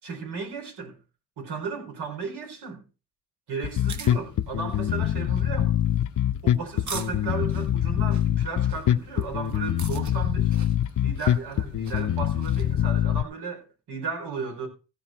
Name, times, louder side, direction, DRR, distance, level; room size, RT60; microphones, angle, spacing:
voice 1, 0.0-1.0 1.4-2.8 3.5-5.8 6.4-10.5 11.0-14.7, right 5 dB, 80° right, 4.6 m, -35 dB
Bass guitar, 3.6-13.2, left 11 dB, 50° left, 0.6 m, -24 dB
sound 1, 3.7-12.7, right 4 dB, 50° right, 1.6 m, -44 dB
16.0 x 5.3 x 5.9 m
cardioid pair, 95°, 39 cm